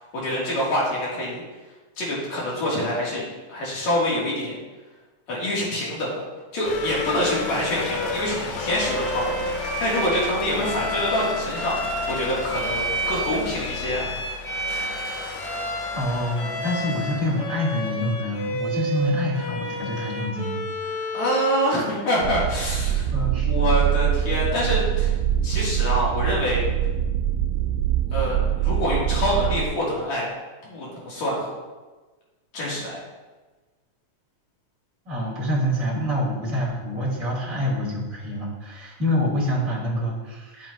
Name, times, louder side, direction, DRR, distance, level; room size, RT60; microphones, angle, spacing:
voice 1, 0.1-1.4 2.0-4.6 5.3-6.2 6.5-14.1 21.1-23.1 23.4-25.2 25.4-26.6 28.1-30.3 30.6-31.5 32.5-33.0, equal, 60° left, -6 dB, 3.4 m, -26 dB
sound 1, 6.6-17.6, left 4 dB, 90° left, 2.6 m, -34 dB
Bowed string instrument, 6.6-21.8, equal, 35° left, 2.6 m, -31 dB
voice 2, 15.9-21.1 23.1-23.5 35.0-40.7, equal, 25° right, -6 dB, 2.8 m, -26 dB
sound 2, 22.2-29.6, right 10 dB, 85° right, 2.1 m, -23 dB
11.0 x 7.5 x 2.7 m, 1.2 s
omnidirectional pair, 3.6 m